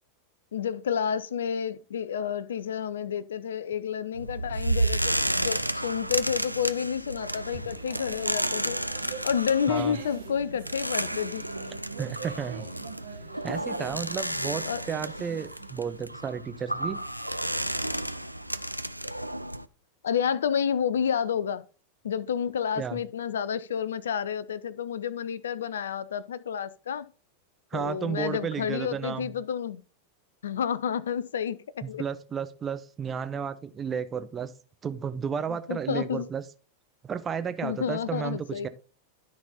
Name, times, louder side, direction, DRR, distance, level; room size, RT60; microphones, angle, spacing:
voice 1, 0.5-8.8 9.2-11.5 14.7-14.8 20.0-21.6 22.0-27.1 27.7-29.8 30.4-32.0 35.5-36.3 37.6-38.7, left 8 dB, 65° left, 0.5 m, -30 dB
sound 1, 4.1-19.6, right 1 dB, 90° right, 0.4 m, -32 dB
sound 2, 7.5-16.0, right 8 dB, 60° right, 1.6 m, -44 dB
voice 2, 9.7-10.0 12.0-12.7 13.4-17.0 22.8-23.0 27.7-29.3 31.8-34.5 34.8-36.4 37.0-38.7, right 7 dB, 20° right, 0.7 m, -33 dB
12.5 x 4.2 x 4.1 m
figure-of-eight pair, 90°, 0 cm